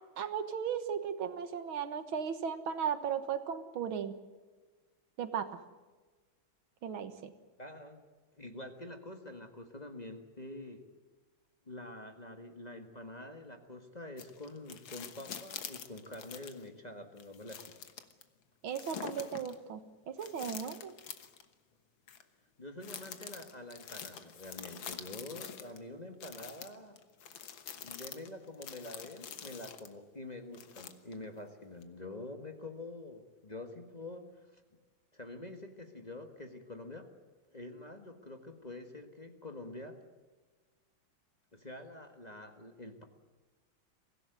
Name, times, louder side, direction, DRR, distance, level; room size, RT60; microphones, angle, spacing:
voice 1, 0.2-4.2 5.2-5.6 6.8-7.3 18.6-19.8 20.1-20.9, right 7 dB, 80° right, 10 dB, 2.2 m, -36 dB
voice 2, 7.6-8.0 8.4-10.8 11.7-17.7 22.6-27.0 27.8-34.6 35.1-37.1 37.5-40.0 41.5-43.0, left 2 dB, 20° left, 5 dB, 1.6 m, -46 dB
sound 1, 14.2-16.7 17.2-18.2 18.7-19.5 20.2-21.5 22.1-22.2 22.8-25.8 26.2-29.9 30.5-31.3 31.8-31.9, left 8 dB, 75° left, 2.1 m, -46 dB
24.0 x 16.0 x 9.4 m, 1.3 s
omnidirectional pair, 2.2 m